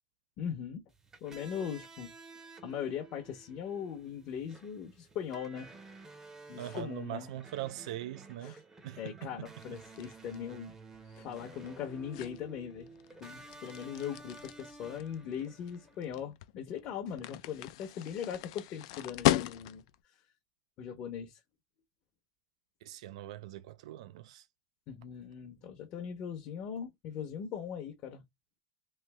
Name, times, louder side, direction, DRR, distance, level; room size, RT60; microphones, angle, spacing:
voice 1, 0.4-0.8 1.2-2.1 2.6-5.7 6.5-7.3 8.4-8.6 9.0-10.7 11.2-12.9 13.2-19.8 20.8-21.4 24.9-28.2, left 8 dB, 40° left, 0.7 m, -40 dB
sound 1, 0.9-16.1, right 3 dB, 15° right, 0.6 m, -53 dB
voice 2, 6.6-8.6 8.8-9.3 22.8-24.5, right 13 dB, 90° right, 0.3 m, -41 dB
sound 2, 9.6-20.0, left 15 dB, 70° left, 0.4 m, -37 dB
3.2 x 2.6 x 3.2 m
supercardioid pair, 155°, 3 cm